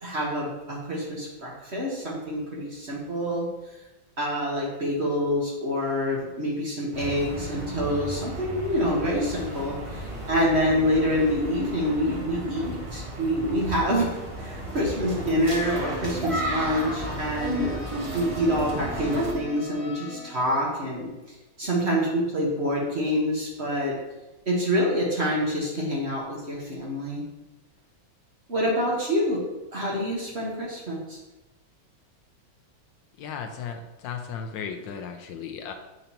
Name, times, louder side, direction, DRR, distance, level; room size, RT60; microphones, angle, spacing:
voice 1, 0.0-3.5 4.2-14.1 14.4-17.7 18.1-21.1 21.6-23.9 24.5-27.2 28.5-29.4 29.7-31.2, equal, 40° right, -3 dB, 1.4 m, -26 dB
sound 1, 6.9-19.3, right 1 dB, 20° right, 0.9 m, -34 dB
sound 2, 15.4-20.4, left 1 dB, 40° left, 0.5 m, -41 dB
voice 2, 33.2-35.7, left 6 dB, 75° left, 5 dB, 1.3 m, -35 dB
8.1 x 5.0 x 2.9 m, 1.1 s
omnidirectional pair, 2.1 m